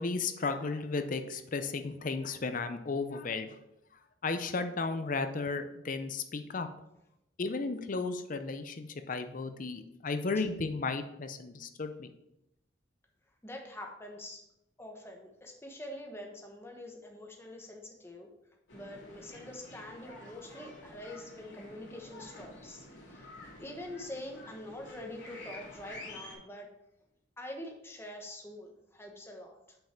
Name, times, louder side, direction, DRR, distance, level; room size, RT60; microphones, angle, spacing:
voice 1, 0.0-3.6 4.2-6.7 7.4-12.1, left 4 dB, 45° left, 8 dB, 0.6 m, -34 dB
voice 2, 13.4-14.4 14.8-18.3 18.7-26.7 27.4-29.8, left 1 dB, 15° left, 1 dB, 1.0 m, -45 dB
sound 1, 18.7-26.4, left 1 dB, 80° left, 2.5 m, -49 dB
5.7 x 5.5 x 4.4 m, 0.84 s
head